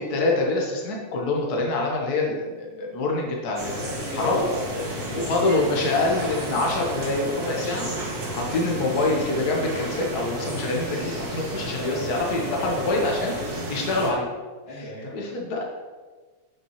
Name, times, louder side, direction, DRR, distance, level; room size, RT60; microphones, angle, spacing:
voice 1, 0.1-4.4 5.1-7.9 8.3-13.3 13.7-14.3 15.1-15.6, left 2 dB, 80° left, -1 dB, 0.8 m, -25 dB
sound 1, 3.6-14.1, right 1 dB, 50° right, 1.1 m, -32 dB
voice 2, 4.0-6.0 14.6-15.1, left 1 dB, 10° left, -10 dB, 2.0 m, -37 dB
9.7 x 7.5 x 3.2 m, 1.4 s
omnidirectional pair, 3.7 m